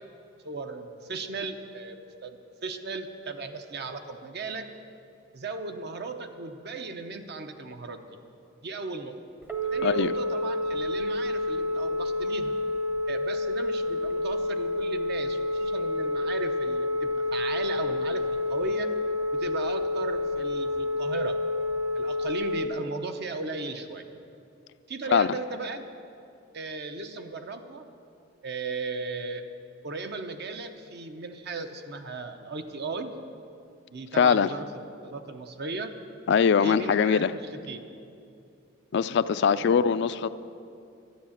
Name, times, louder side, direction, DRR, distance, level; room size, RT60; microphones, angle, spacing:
voice 1, 0.4-4.7 5.3-8.0 8.6-9.2 9.7-12.6 13.1-18.9 19.3-21.4 21.9-24.0 24.9-25.8 26.5-27.8 28.4-29.5 29.8-33.1 33.9-34.6 35.0-35.9 36.6-37.8 39.6-39.7, right 3 dB, 60° right, 7 dB, 0.8 m, -36 dB
Telephone, 9.4-22.7, left 2 dB, 10° right, 0.7 m, -29 dB
voice 2, 9.8-10.1 25.1-25.3 34.2-34.5 36.3-37.3 38.9-40.3, left 6 dB, 60° left, 13 dB, 0.4 m, -22 dB
11.5 x 10.5 x 7.2 m, 2.6 s
head